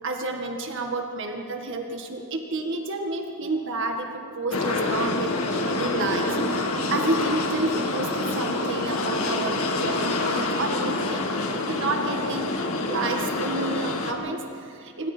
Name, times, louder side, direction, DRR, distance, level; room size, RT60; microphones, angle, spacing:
voice 1, 0.0-5.3 5.6-12.5 12.9-15.1, right 2 dB, 60° right, 3 dB, 1.8 m, -30 dB
sound 1, 4.5-14.1, left 2 dB, 70° left, 2.3 m, -27 dB
27.0 x 24.5 x 4.5 m, 2.5 s
head